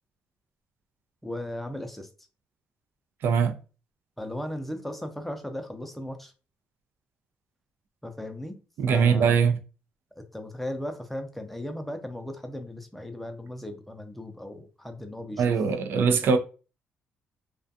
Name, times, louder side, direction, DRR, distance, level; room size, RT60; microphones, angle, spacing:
voice 1, 1.2-2.1 4.2-6.3 8.0-8.6 8.9-9.4 10.1-15.6 16.2-16.4, left 1 dB, 5° left, 0.5 m, -37 dB
voice 2, 3.2-3.6 8.8-9.6 15.4-16.4, right 6 dB, 65° right, 0.5 m, -22 dB
2.4 x 2.3 x 2.6 m
cardioid pair, 95°, 4 cm